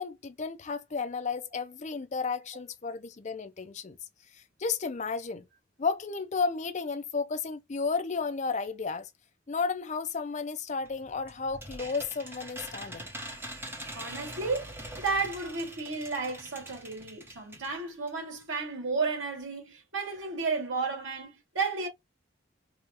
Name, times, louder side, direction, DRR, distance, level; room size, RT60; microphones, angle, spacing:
voice 1, 0.0-4.0 4.3-5.5 5.8-9.1 9.5-13.1, left 4 dB, 35° left, 0.5 m, -33 dB
sound 1, 10.8-17.7 18.1-18.2 18.4-18.5, right 1 dB, 10° right, 1.0 m, -43 dB
voice 2, 13.9-21.9, right 4 dB, 75° right, 2.0 m, -33 dB
4.9 x 2.4 x 2.8 m
head